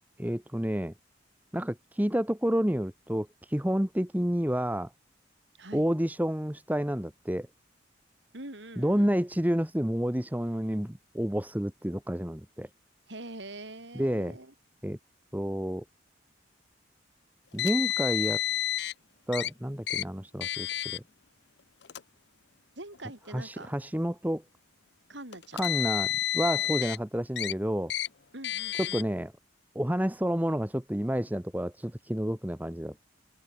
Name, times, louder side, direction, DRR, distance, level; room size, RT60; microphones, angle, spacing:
voice 1, 0.2-0.9 1.5-4.9 5.7-7.5 8.8-12.7 13.9-14.4 14.8-15.0 15.3-15.8 17.5-18.4 19.3-21.0 23.3-24.4 25.5-27.9 28.8-29.3 29.7-33.0, equal, 10° right, 1.2 m, -29 dB
voice 2, 5.6-5.9 8.3-9.1 13.1-14.5 22.8-23.7 25.1-25.7 28.3-29.0, right 2 dB, 70° right, 5.2 m, -44 dB
Car, 17.6-18.9 19.3-19.5 19.9-20.0 20.4-21.0 21.8-22.0 22.9-23.0 25.3-27.0 27.4-27.5 27.9-28.1 28.4-29.0, left 13 dB, 60° left, 0.6 m, -30 dB
head